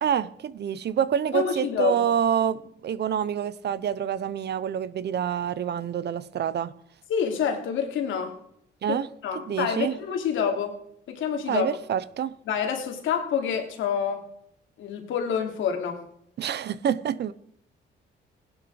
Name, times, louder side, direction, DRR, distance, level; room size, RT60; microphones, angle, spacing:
voice 1, 0.0-6.7 8.8-9.1 9.3-10.0 11.5-12.4 16.4-17.3, right 9 dB, 60° right, 0.9 m, -27 dB
voice 2, 1.3-2.0 7.1-8.4 8.9-9.0 9.2-10.8 11.1-11.7 12.5-14.3 14.8-16.0, left 7 dB, 80° left, 2.9 m, -27 dB
17.0 x 11.5 x 4.9 m
cardioid pair, 90°, 20 cm